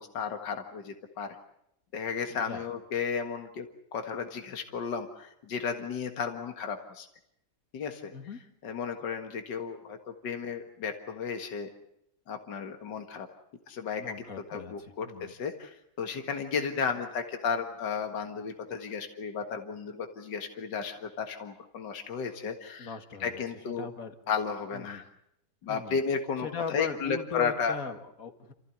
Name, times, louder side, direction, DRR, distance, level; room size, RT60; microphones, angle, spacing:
voice 1, 0.0-1.4 1.9-3.7 3.9-7.1 7.7-8.1 8.6-11.7 12.3-13.3 13.7-14.2 14.5-22.9 23.2-23.9 24.3-25.1 25.6-27.8, left 6 dB, 75° left, 6 dB, 2.4 m, -34 dB
voice 2, 2.3-2.6 8.1-8.4 14.0-15.3 22.8-24.1 24.7-25.1 25.7-26.0 26.4-28.5, left 6 dB, 50° left, 8 dB, 2.4 m, -38 dB
29.0 x 15.5 x 9.9 m, 0.78 s
omnidirectional pair, 1.9 m